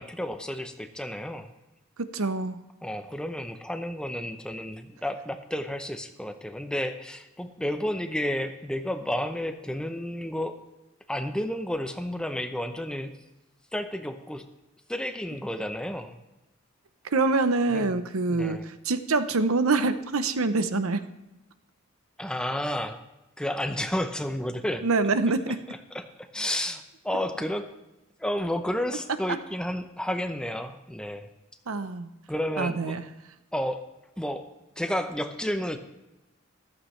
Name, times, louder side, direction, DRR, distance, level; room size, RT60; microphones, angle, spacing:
voice 1, 0.0-1.5 2.8-10.6 11.1-13.1 13.7-14.5 14.9-16.2 17.7-17.9 18.3-18.7 22.2-23.0 23.4-24.9 25.5-27.7 28.2-31.3 32.3-33.0 33.5-33.9 34.2-34.4 34.8-35.8, left 1 dB, 5° left, 7 dB, 0.6 m, -31 dB
voice 2, 2.0-2.6 17.1-18.6 18.9-21.0 24.8-25.6 31.7-32.1 32.6-33.0, right 3 dB, 85° right, 11 dB, 0.8 m, -25 dB
14.5 x 13.0 x 3.2 m, 0.98 s
head